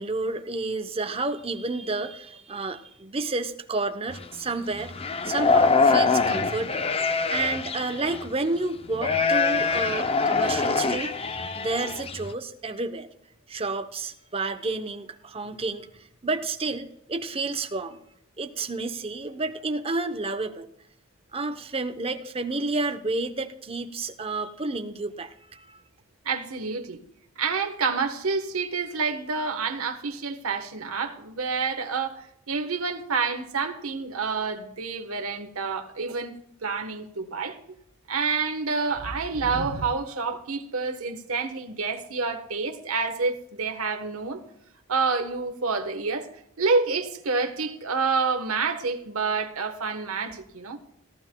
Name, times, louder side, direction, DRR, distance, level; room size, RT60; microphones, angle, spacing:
voice 1, 0.0-4.9 5.2-13.1 13.5-18.0 18.4-20.7 21.3-25.8, right 3 dB, 25° right, 0.8 m, -30 dB
sound 1, 4.1-4.2 4.8-8.3 8.9-12.3, left 4 dB, 25° left, 0.5 m, -24 dB
voice 2, 26.2-27.0 27.4-36.4 36.6-37.6 38.1-44.4 44.9-46.3 46.6-50.8, right 4 dB, 80° right, 1.2 m, -28 dB
18.0 x 12.0 x 2.3 m
head